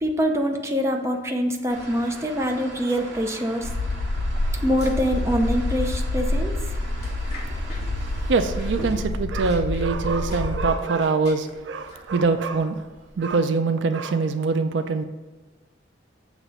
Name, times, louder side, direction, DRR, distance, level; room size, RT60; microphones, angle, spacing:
voice 1, 0.0-3.7 4.6-6.6, equal, 15° right, 3 dB, 0.6 m, -24 dB
sound 1, 1.7-8.9, right 1 dB, 85° right, 1.5 m, -41 dB
sound 2, 3.6-10.7, left 2 dB, 70° left, 0.5 m, -27 dB
sound 3, 4.6-13.3, equal, 40° left, 1.8 m, -41 dB
voice 2, 8.3-12.9 13.2-15.0, right 4 dB, 70° right, 8 dB, 0.4 m, -23 dB
7.3 x 3.0 x 5.4 m, 1.3 s
head